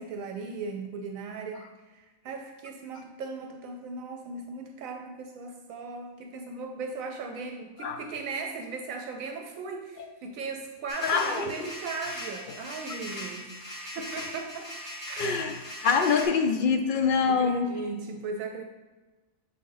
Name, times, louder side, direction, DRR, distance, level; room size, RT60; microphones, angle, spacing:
voice 1, 0.0-13.6 13.9-15.5 17.2-18.6, right 4 dB, 80° right, 4 dB, 1.0 m, -38 dB
sound 1, 10.9-16.3, equal, 45° left, 1.5 m, -40 dB
voice 2, 11.0-11.5 15.2-15.5 15.8-17.7, left 5 dB, 65° left, 5 dB, 0.5 m, -24 dB
7.2 x 3.7 x 3.8 m, 1.2 s
omnidirectional pair, 1.4 m